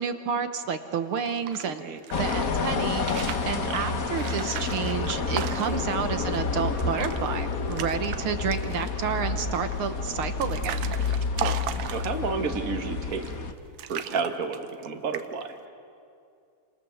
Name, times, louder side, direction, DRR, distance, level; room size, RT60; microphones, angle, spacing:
voice 1, 0.0-1.8 2.2-3.0 3.4-10.9, right 6 dB, 60° right, 9 dB, 1.5 m, -30 dB
sound 1, 1.1-2.5 2.9-3.6 4.1-6.0 6.3-6.4 6.7-7.2 7.5-8.2 8.5-9.0 9.7-12.4 13.1-13.5 13.8-14.9 15.1-15.5, right 10 dB, 80° right, 2.3 m, -37 dB
voice 2, 1.6-2.0 3.6-3.8 5.7-5.8 11.4-13.3 13.9-15.6, right 4 dB, 35° right, 5 dB, 1.8 m, -31 dB
sound 2, 2.1-13.5, left 4 dB, 50° left, 1.0 m, -29 dB
30.0 x 26.5 x 7.2 m, 2.5 s
omnidirectional pair, 3.4 m